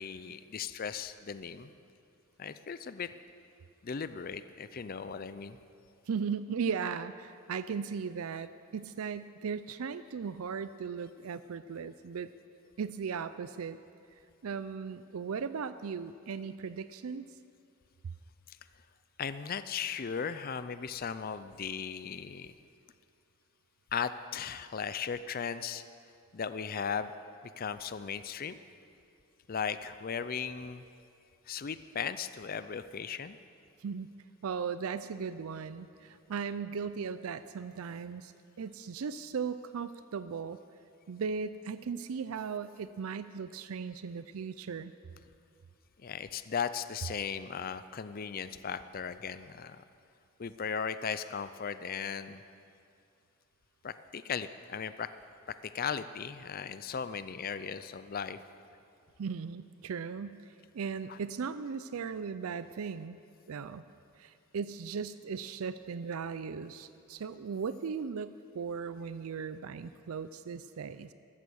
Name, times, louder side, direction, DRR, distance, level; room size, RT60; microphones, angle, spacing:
voice 1, 0.0-1.7 2.4-3.1 3.8-5.6 19.2-22.5 23.9-25.8 26.3-27.1 27.6-28.6 29.5-30.8 31.5-33.4 46.0-49.8 50.4-52.4 53.8-55.1 55.5-58.4 61.1-61.2, left 6 dB, 40° left, 13 dB, 0.5 m, -37 dB
voice 2, 6.1-12.3 12.8-13.8 14.4-17.3 33.8-34.1 34.4-38.3 38.6-40.6 41.1-44.9 59.2-60.4 60.7-63.2 63.5-63.8 64.2-71.1, right 6 dB, 75° right, 13 dB, 0.4 m, -37 dB
14.5 x 13.5 x 6.4 m, 2.4 s
head